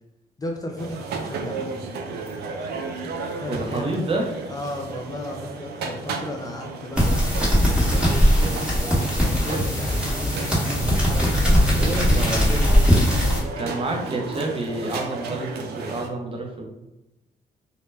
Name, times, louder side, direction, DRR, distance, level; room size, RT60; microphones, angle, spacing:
voice 1, 0.4-2.1 3.3-4.1 4.5-11.3 11.7-12.8, left 1 dB, 25° left, 1 dB, 0.4 m, -35 dB
sound 1, 0.8-16.1, right 4 dB, 80° right, 0.4 m, -34 dB
voice 2, 3.5-4.3 11.8-12.5 13.6-16.7, right 2 dB, 35° right, 1 dB, 0.6 m, -28 dB
sound 2, 7.0-13.4, equal, 5° right, 1.0 m, -20 dB
2.1 x 2.1 x 3.3 m, 0.92 s
cardioid pair, 75°, 16 cm